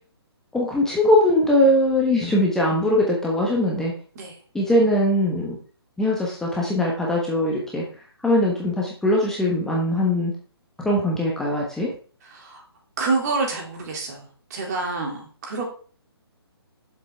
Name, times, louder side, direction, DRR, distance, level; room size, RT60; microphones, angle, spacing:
voice 1, 0.5-3.9 4.5-5.5 6.0-7.8 8.2-10.3 10.8-11.9, left 1 dB, 5° left, -3 dB, 1.1 m, -21 dB
voice 2, 13.0-14.2 14.5-15.7, right 3 dB, 40° right, 1 dB, 2.6 m, -27 dB
7.7 x 7.0 x 3.4 m, 0.42 s
figure-of-eight pair, 145°, 14 cm